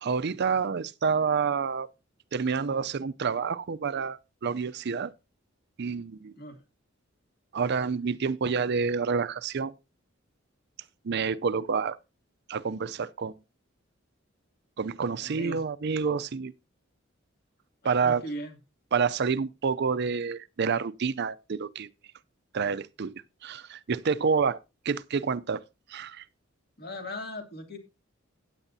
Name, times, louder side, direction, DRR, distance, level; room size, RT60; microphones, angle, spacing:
voice 1, 0.0-1.9 2.3-5.1 5.8-6.3 7.5-9.7 11.0-12.0 12.5-13.3 14.8-16.5 17.8-18.2 18.9-21.9 22.5-24.6 24.8-25.6 25.9-26.2, right 5 dB, 55° right, 0.5 m, -28 dB
voice 2, 15.2-15.6 17.8-18.6 26.8-27.8, equal, 50° left, 2.7 m, -38 dB
16.0 x 9.0 x 2.7 m
head